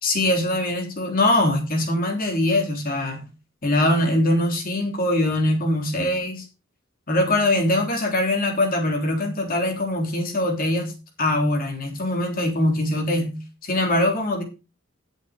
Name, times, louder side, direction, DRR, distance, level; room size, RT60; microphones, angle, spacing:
voice 1, 0.0-3.2 3.6-6.4 7.1-10.9 11.2-13.3 13.6-14.4, left 1 dB, 45° left, 2 dB, 3.3 m, -22 dB
10.5 x 8.0 x 4.9 m, 0.31 s
head